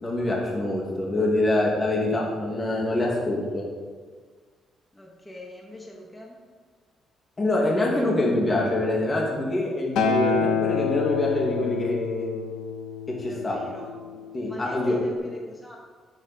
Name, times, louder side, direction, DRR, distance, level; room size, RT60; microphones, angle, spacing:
voice 1, 0.0-3.7 7.4-12.4 13.2-13.6 14.3-15.0, left 1 dB, 30° left, -2 dB, 2.3 m, -25 dB
voice 2, 4.9-6.4 13.2-15.8, left 1 dB, 15° left, -2 dB, 1.6 m, -42 dB
Acoustic guitar, 10.0-14.3 15.1-15.2, left 6 dB, 90° left, 1.0 m, -28 dB
8.9 x 7.8 x 4.3 m, 1.5 s
cardioid pair, 90°, 0 cm